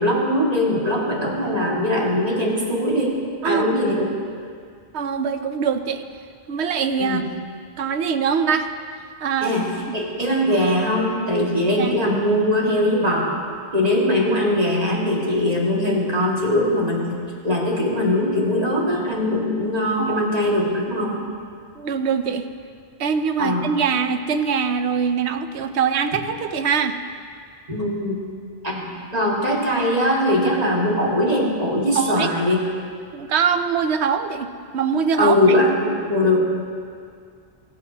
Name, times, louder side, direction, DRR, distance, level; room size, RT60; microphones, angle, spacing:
voice 1, 0.0-3.2 3.4-4.1 7.0-7.2 9.4-13.4 13.7-21.3 23.4-23.6 27.7-28.3 28.6-32.6 35.2-36.4, left 1 dB, 35° right, -3 dB, 2.0 m, -21 dB
voice 2, 3.4-3.8 4.9-6.0 6.5-7.2 7.8-8.7 9.2-9.9 11.8-12.0 20.0-20.2 21.8-22.5 23.0-27.0 32.0-32.3 33.1-34.5 34.7-35.3, right 6 dB, 80° right, 9 dB, 0.9 m, -23 dB
23.5 x 8.6 x 2.8 m, 2.2 s
omnidirectional pair, 1.1 m